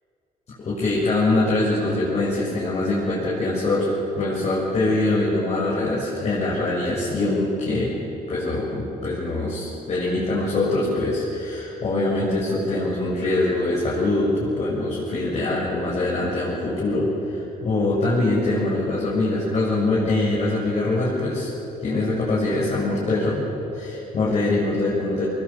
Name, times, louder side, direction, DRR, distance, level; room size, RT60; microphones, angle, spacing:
voice 1, 0.6-3.9 4.2-7.9 8.3-21.5 21.8-23.4 23.7-25.2, left 2 dB, 45° left, -7 dB, 7.1 m, -23 dB
23.5 x 21.0 x 8.7 m, 3.0 s
cardioid pair, 105°, 15 cm